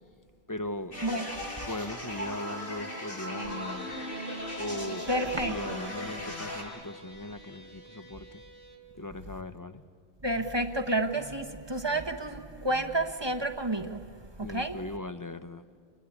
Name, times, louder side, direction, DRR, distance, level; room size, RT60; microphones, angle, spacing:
voice 1, 0.5-1.0 1.6-4.0 4.6-8.4 9.0-9.8 14.4-15.6, left 1 dB, 20° left, 0.7 m, -39 dB
sound 1, 0.9-6.6, left 1 dB, 65° left, 5.7 m, -37 dB
sound 2, 3.5-8.8, equal, 80° left, 4.5 m, -51 dB
voice 2, 5.1-5.8 10.2-14.0 14.4-14.8, right 1 dB, 25° right, 1.2 m, -30 dB
28.0 x 21.0 x 10.0 m
omnidirectional pair, 1.1 m